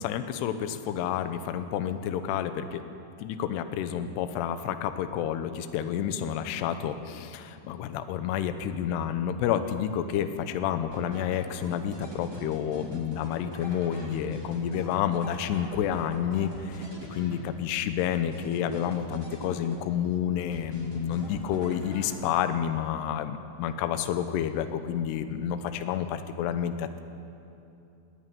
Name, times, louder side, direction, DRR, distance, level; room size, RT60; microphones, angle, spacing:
voice 1, 0.0-2.8 3.2-27.0, left 9 dB, 75° left, 9 dB, 2.6 m, -29 dB
sound 1, 10.9-17.7 18.1-20.1 20.5-22.5, equal, 10° right, 1.4 m, -43 dB
20.0 x 15.0 x 9.4 m, 2.8 s
omnidirectional pair, 5.7 m